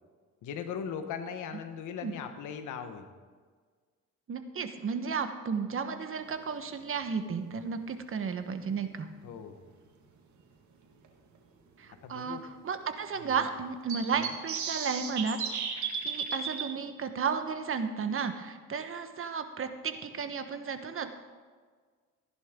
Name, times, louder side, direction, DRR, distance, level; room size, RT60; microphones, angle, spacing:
voice 1, 0.4-3.1 9.2-9.6 12.0-12.4 13.2-13.5 14.1-14.3, left 7 dB, 85° left, 7 dB, 1.3 m, -39 dB
voice 2, 4.3-9.1 11.8-12.4 12.6-15.4 15.7-21.1, right 5 dB, 45° right, 8 dB, 1.3 m, -33 dB
sound 1, 8.3-8.4 10.4-10.5 11.0-11.1 11.4-11.5 13.9-16.7, right 6 dB, 70° right, 1.9 m, -34 dB
15.0 x 10.5 x 3.8 m, 1.5 s
cardioid pair, 90°, 30 cm